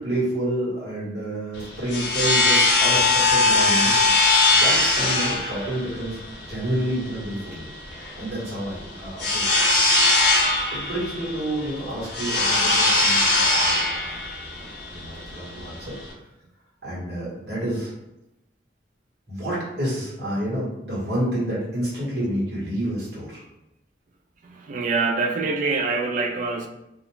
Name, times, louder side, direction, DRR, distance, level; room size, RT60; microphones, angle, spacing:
voice 1, 0.0-4.0 4.5-6.2 6.5-7.7 8.2-9.6 10.7-14.2 14.5-15.9 16.8-17.9 19.3-23.4, right 1 dB, 65° right, -7 dB, 1.2 m, -29 dB
sound 1, 1.5-16.1, left 2 dB, 70° left, 0.7 m, -21 dB
voice 2, 24.4-26.7, right 4 dB, 45° right, 4 dB, 0.3 m, -25 dB
2.4 x 2.1 x 3.0 m, 0.89 s
head